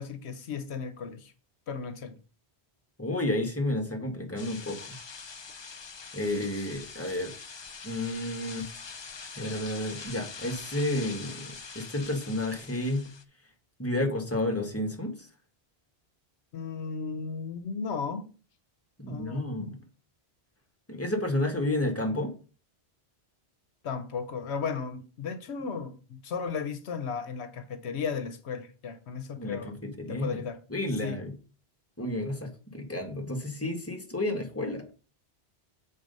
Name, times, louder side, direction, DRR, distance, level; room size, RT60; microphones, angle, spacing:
voice 1, 0.0-1.3 1.7-2.2 16.5-18.3 19.1-19.8 23.8-29.7 30.1-30.6 31.0-31.2, left 5 dB, 80° left, 1.1 m, -35 dB
voice 2, 3.0-4.9 6.1-7.3 7.8-8.7 9.4-13.0 13.8-15.3 19.0-19.8 20.9-22.3 29.4-30.4 30.7-31.3 32.0-34.8, left 1 dB, 15° left, 1.5 m, -31 dB
sound 1, 4.4-13.2, left 5 dB, 35° left, 0.5 m, -44 dB
7.5 x 4.1 x 5.3 m
omnidirectional pair, 1.1 m